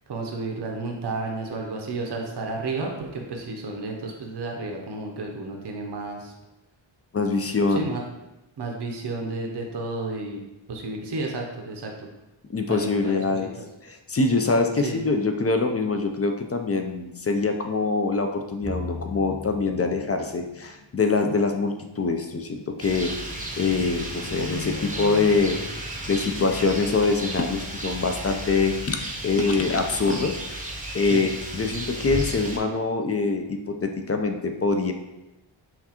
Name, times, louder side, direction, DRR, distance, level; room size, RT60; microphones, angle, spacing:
voice 1, 0.1-6.3 7.7-8.0 8.6-10.4 10.7-12.1 12.7-13.7 14.8-15.0 31.1-31.2, right 3 dB, 55° right, 1 dB, 0.7 m, -32 dB
voice 2, 7.1-7.9 12.5-13.5 13.8-23.1 23.6-25.6 26.1-30.6 30.9-34.9, left 4 dB, 35° left, 5 dB, 0.4 m, -24 dB
sound 1, 18.6-20.8, left 2 dB, 65° left, 1.4 m, -38 dB
Rain, 22.8-32.6, right 1 dB, 15° right, 0.6 m, -34 dB
5.7 x 2.4 x 2.8 m, 0.97 s
wide cardioid pair, 70°, 48 cm